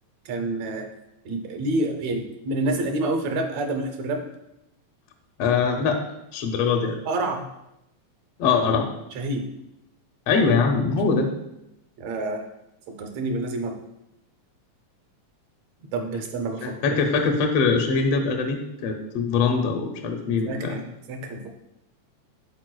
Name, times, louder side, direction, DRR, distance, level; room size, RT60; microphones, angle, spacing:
voice 1, 0.3-0.9 1.3-4.2 7.1-7.4 9.2-9.5 12.0-12.4 12.9-13.8 15.9-17.0 20.5-21.5, right 2 dB, 70° right, 4 dB, 1.9 m, -28 dB
voice 2, 5.4-6.0 6.3-7.0 8.4-8.9 10.3-11.3 16.6-20.7, left 5 dB, 80° left, 3 dB, 1.4 m, -22 dB
11.0 x 4.3 x 2.3 m, 0.87 s
omnidirectional pair, 3.4 m